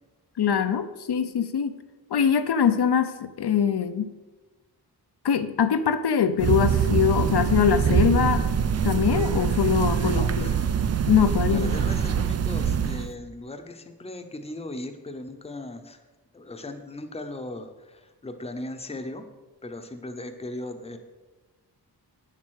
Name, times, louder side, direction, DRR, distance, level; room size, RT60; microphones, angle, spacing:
voice 1, 0.4-1.8 2.1-4.1 5.2-8.4 8.8-10.5 11.1-11.8, left 7 dB, 70° left, 9 dB, 0.7 m, -23 dB
sound 1, 6.4-13.1, right 7 dB, 40° right, 0.4 m, -24 dB
voice 2, 10.0-10.7 11.2-16.0 16.3-19.2 19.6-21.0, left 2 dB, 15° left, 7 dB, 0.8 m, -38 dB
9.6 x 7.6 x 6.4 m, 1.2 s
wide cardioid pair, 175°, 40 cm